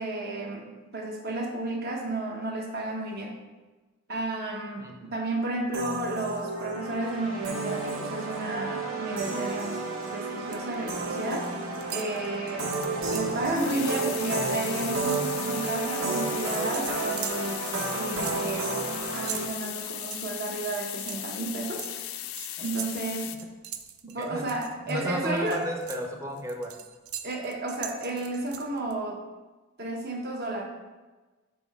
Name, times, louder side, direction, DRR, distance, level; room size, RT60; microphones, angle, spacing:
voice 1, 0.0-3.4 4.1-9.8 10.1-11.6 11.9-12.7 13.1-17.7 17.9-18.7 19.1-22.1 22.6-23.3 24.0-25.6 27.2-29.2 29.8-30.6, right 2 dB, 45° right, 0 dB, 1.0 m, -32 dB
voice 2, 4.8-5.1 24.2-24.5 24.9-26.7, equal, 15° right, 2 dB, 0.6 m, -33 dB
sound 1, 5.7-19.5, right 3 dB, 75° right, 1.0 m, -32 dB
sound 2, 10.1-10.7 11.0-11.5 11.8-13.4 13.8-14.0 14.3-15.9 16.7-24.9 25.4-28.9, right 10 dB, 90° right, 0.5 m, -41 dB
sound 3, 13.5-23.4, left 12 dB, 75° left, 0.4 m, -37 dB
6.0 x 4.5 x 3.6 m, 1.2 s
head